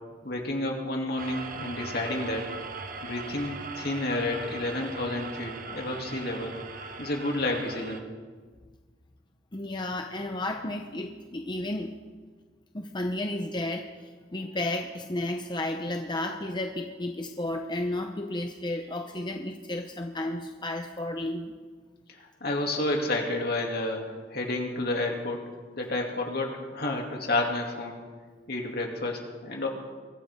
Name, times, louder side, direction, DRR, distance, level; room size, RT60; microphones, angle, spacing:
voice 1, 0.2-2.5 3.0-6.6 7.0-8.1 22.2-25.4 25.7-28.0 28.5-29.7, left 2 dB, 60° left, 1 dB, 2.7 m, -30 dB
sound 1, 1.2-8.0, right 4 dB, 50° right, 1.2 m, -40 dB
voice 2, 9.5-11.9 12.7-13.9 14.3-21.5, left 1 dB, 25° left, 4 dB, 0.8 m, -32 dB
23.5 x 15.0 x 3.7 m, 1.5 s
head